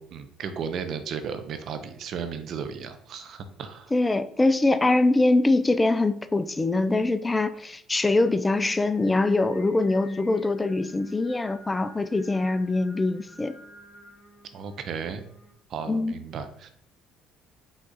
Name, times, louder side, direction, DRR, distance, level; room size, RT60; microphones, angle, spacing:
voice 1, 0.0-3.9 14.5-15.2 15.7-16.7, right 6 dB, 55° right, 9 dB, 0.5 m, -35 dB
voice 2, 3.9-13.5 15.9-16.2, left 2 dB, 15° left, 12 dB, 0.3 m, -23 dB
Singing, 8.9-15.5, left 1 dB, 50° left, 1.0 m, -51 dB
5.0 x 2.4 x 3.9 m, 0.66 s
supercardioid pair, 85°, 0 cm